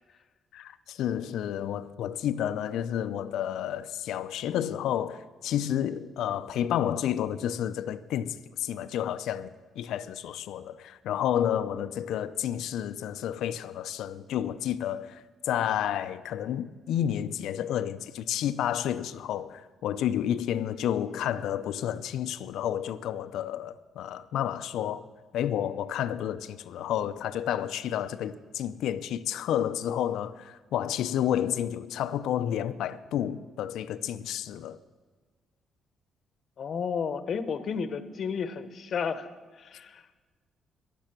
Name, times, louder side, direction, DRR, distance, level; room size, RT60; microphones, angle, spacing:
voice 1, 0.5-25.0 25.3-34.8, left 10 dB, 80° left, 0.6 m, -30 dB
voice 2, 36.6-39.3 39.5-40.2, left 6 dB, 55° left, 1.0 m, -32 dB
15.5 x 11.5 x 6.0 m
cardioid pair, 90°, 0 cm